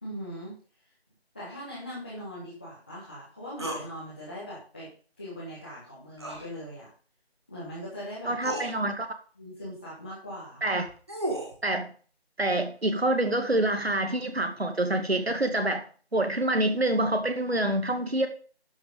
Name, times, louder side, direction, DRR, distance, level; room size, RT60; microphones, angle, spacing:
voice 1, 0.0-0.5 1.3-4.9 5.2-6.9 7.5-8.3 9.3-10.6, equal, 10° left, -10 dB, 1.6 m, -40 dB
sound 1, 3.6-3.9 6.2-6.5 7.8-7.9 8.4-8.7 10.7-11.6, right 1 dB, 25° right, 1.6 m, -33 dB
voice 2, 8.3-9.1 10.6-10.9 11.6-11.9 12.4-15.8 16.1-18.3, right 1 dB, 70° right, 7 dB, 2.2 m, -26 dB
12.0 x 6.2 x 5.3 m, 0.41 s
figure-of-eight pair, 170°, 32 cm